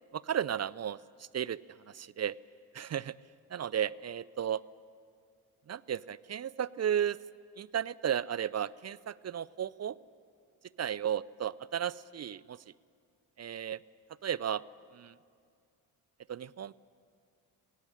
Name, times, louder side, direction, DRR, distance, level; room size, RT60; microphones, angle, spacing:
voice 1, 0.1-1.0 1.3-1.6 1.9-2.3 2.7-3.1 3.5-4.6 5.7-7.2 7.6-10.0 10.8-12.6 13.4-13.8 14.2-14.6 14.9-15.1 16.3-16.7, right 9 dB, 35° right, 21 dB, 0.5 m, -34 dB
18.0 x 18.0 x 10.0 m, 2.3 s
hypercardioid pair, 45°, 48 cm